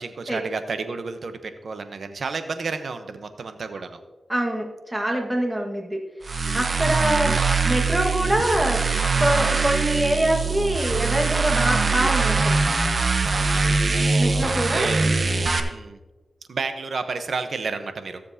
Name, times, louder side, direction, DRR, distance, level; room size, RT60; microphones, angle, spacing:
voice 1, 0.0-4.0 13.3-13.8 14.1-15.1 15.6-16.0 16.5-18.2, right 4 dB, 80° right, 9 dB, 0.9 m, -31 dB
voice 2, 4.3-6.0 6.5-8.8 9.2-12.6 14.2-14.9, right 1 dB, 15° right, 0 dB, 1.6 m, -24 dB
sound 1, 6.2-15.6, right 4 dB, 60° right, 0.9 m, -22 dB
16.0 x 7.2 x 2.8 m, 1.2 s
cardioid pair, 45°, 0 cm